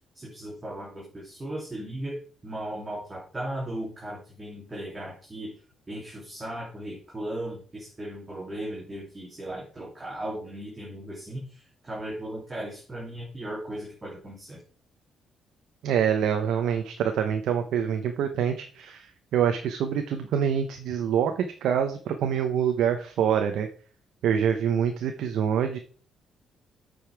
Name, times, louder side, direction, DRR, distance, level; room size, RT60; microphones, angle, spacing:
voice 1, 0.1-5.5 5.9-14.6, right 1 dB, 20° right, -3 dB, 2.8 m, -37 dB
voice 2, 15.8-23.7 24.2-25.8, right 8 dB, 80° right, 6 dB, 0.9 m, -26 dB
8.6 x 5.4 x 4.6 m, 0.41 s
cardioid pair, 90°, 0 cm